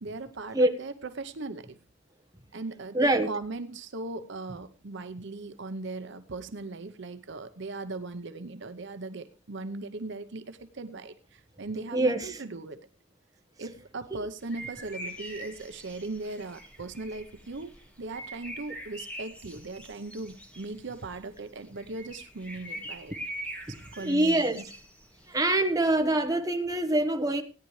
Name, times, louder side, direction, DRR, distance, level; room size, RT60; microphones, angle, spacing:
voice 1, 0.0-1.8 2.5-12.8 13.6-23.1 23.7-24.7, right 3 dB, 65° right, 0.8 m, -39 dB
voice 2, 2.9-3.3 11.9-12.3 24.0-24.6 25.3-27.4, right 1 dB, 20° right, 1.3 m, -24 dB
sound 1, 14.4-26.1, right 1 dB, 5° left, 2.2 m, -44 dB
17.0 x 10.5 x 3.2 m
head